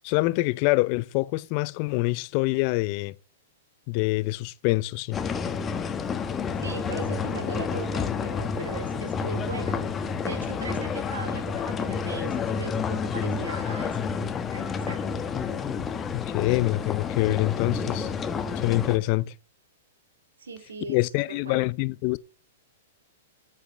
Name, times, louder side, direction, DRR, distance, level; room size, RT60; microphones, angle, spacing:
voice 1, 0.0-3.1 3.9-5.2 16.1-18.1 18.6-19.3 20.9-22.2, left 21 dB, 45° left, 0.5 m, -25 dB
sound 1, 5.1-19.0, left 6 dB, 20° left, 1.2 m, -29 dB
voice 2, 6.6-9.8 10.2-14.1 14.5-15.1 20.4-21.0 21.3-21.7, right 4 dB, 90° right, 3.9 m, -39 dB
8.3 x 7.6 x 7.8 m
hypercardioid pair, 120°, 0 cm